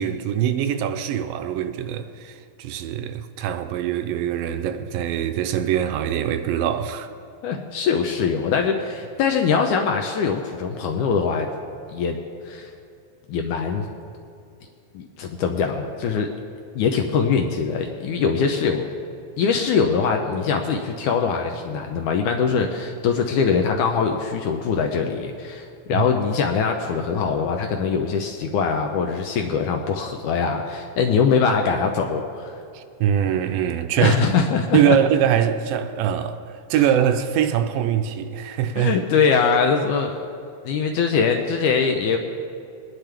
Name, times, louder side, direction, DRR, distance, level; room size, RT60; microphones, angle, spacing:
voice 1, 0.0-7.1 25.9-26.1 32.7-34.2 34.7-39.0, right 9 dB, 80° right, 2.2 m, -23 dB
voice 2, 7.4-11.5 11.9-12.2 12.5-12.7 13.3-13.9 14.9-16.3 16.7-18.9 19.4-32.6 34.0-35.0 38.8-40.3 40.7-42.2, left 5 dB, 75° left, 1.9 m, -22 dB
22.0 x 10.5 x 3.4 m
omnidirectional pair, 4.2 m